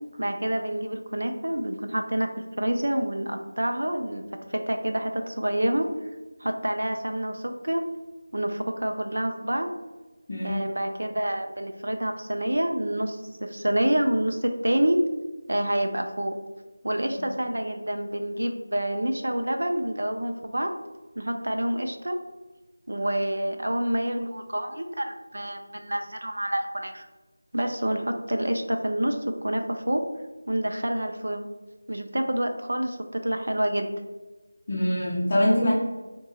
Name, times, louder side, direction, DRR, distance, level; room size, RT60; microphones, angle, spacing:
voice 1, 0.2-4.2 4.5-5.9 6.4-7.9 8.3-9.7 10.4-15.0 15.5-16.4 16.8-20.7 21.2-22.2 22.9-27.1 27.5-30.0 30.5-31.4 31.9-33.9, right 1 dB, 85° right, 5 dB, 0.5 m, -27 dB
voice 2, 10.3-10.6 17.2-17.3 34.7-35.7, left 1 dB, 30° left, -7 dB, 0.5 m, -23 dB
2.8 x 2.2 x 4.1 m, 1.2 s
figure-of-eight pair, 175°, 0 cm